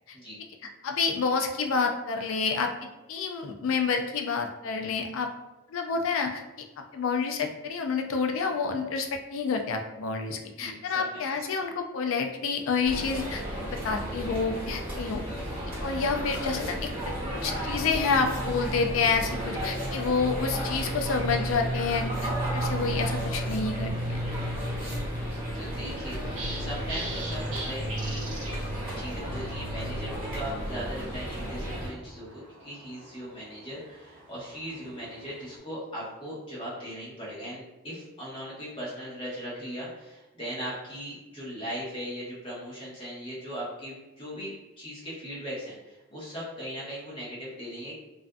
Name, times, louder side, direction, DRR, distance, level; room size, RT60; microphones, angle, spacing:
voice 1, 0.8-5.3 5.7-6.4 6.8-15.2 15.8-24.2, left 5 dB, 75° left, 4 dB, 0.4 m, -29 dB
voice 2, 10.5-11.2 24.8-25.3 25.5-26.2 26.6-28.2 29.0-48.0, equal, 25° left, -8 dB, 0.9 m, -39 dB
sound 1, 12.8-31.9, right 1 dB, 25° right, 1.2 m, -32 dB
sound 2, 25.1-35.6, right 2 dB, 65° right, 0.6 m, -45 dB
2.5 x 2.4 x 2.3 m, 1.0 s
head